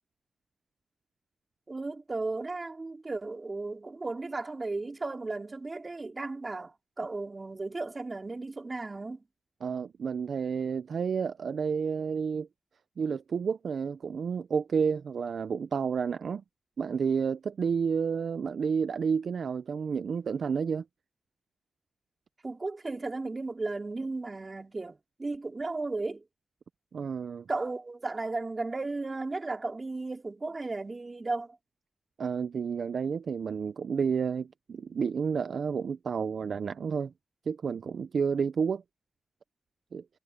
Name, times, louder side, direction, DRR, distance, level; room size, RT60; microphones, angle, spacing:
voice 1, 1.7-9.2 22.4-26.2 27.5-31.6, right 3 dB, 40° right, 3.9 m, -35 dB
voice 2, 9.6-12.5 13.0-16.4 16.8-20.8 26.9-27.5 32.2-37.1 37.5-38.8 39.9-40.0, right 6 dB, 80° right, 0.5 m, -30 dB
cardioid pair, 55°, 0 cm